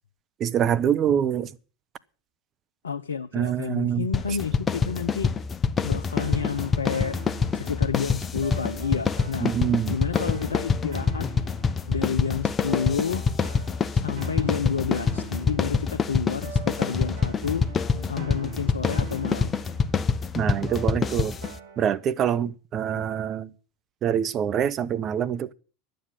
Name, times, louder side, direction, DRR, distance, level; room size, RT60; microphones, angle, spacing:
voice 1, 0.4-1.5 3.3-4.1 9.4-10.0 20.3-21.3 21.8-23.5 24.0-25.5, right 9 dB, 40° right, 0.9 m, -25 dB
voice 2, 2.8-5.3 5.8-7.2 7.5-9.5 9.9-11.3 11.9-13.2 13.9-17.7 18.0-19.5 22.9-23.0, left 6 dB, 85° left, 0.6 m, -30 dB
sound 1, 4.1-21.6, left 5 dB, 25° left, 0.9 m, -26 dB
sound 2, 6.2-22.1, right 4 dB, 75° right, 2.4 m, -43 dB
11.5 x 7.9 x 8.9 m
hypercardioid pair, 85°, 0 cm